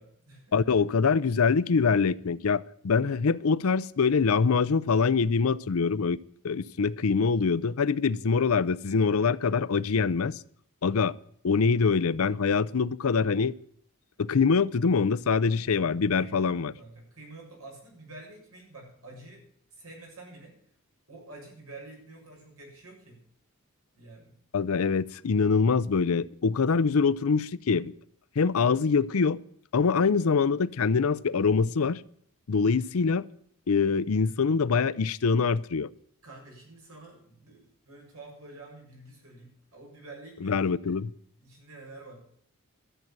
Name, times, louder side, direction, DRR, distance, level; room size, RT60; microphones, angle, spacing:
voice 1, 0.0-0.6 16.1-19.4 19.7-20.5 21.1-23.2 23.9-24.3 36.2-40.7 41.4-42.2, right 2 dB, 90° right, 7.2 m, -48 dB
voice 2, 0.5-6.2 6.4-10.4 10.8-11.1 11.4-13.5 14.2-16.7 24.5-27.9 28.4-29.4 29.7-32.0 32.5-33.2 33.7-35.9 40.4-41.1, left 5 dB, 75° left, 0.5 m, -24 dB
13.5 x 7.8 x 8.8 m
head